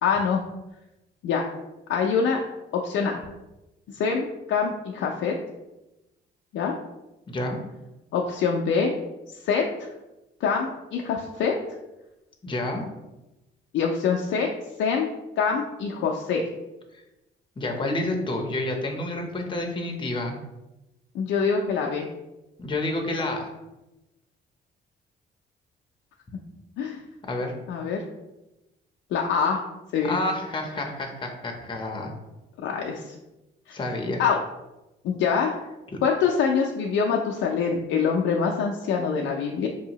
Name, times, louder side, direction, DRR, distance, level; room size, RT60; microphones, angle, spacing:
voice 1, 0.0-0.4 1.2-1.5 1.9-2.4 2.7-3.2 3.9-5.3 6.5-6.7 8.1-8.9 9.3-9.9 10.4-11.5 13.7-14.5 14.8-15.1 15.4-16.5 21.1-22.1 26.8-27.0 27.7-28.0 29.1-29.6 29.9-30.2 32.6-33.2 33.7-33.8 34.2-34.4 35.0-35.6 36.0-39.7, left 6 dB, 75° left, 0 dB, 0.4 m, -25 dB
voice 2, 7.3-7.6 12.4-12.8 17.6-20.4 22.6-23.5 27.3-27.5 30.0-32.1 33.7-34.2 35.9-36.0, left 2 dB, 25° left, 2 dB, 0.7 m, -29 dB
4.6 x 2.7 x 2.9 m, 1.0 s
cardioid pair, 90°, 20 cm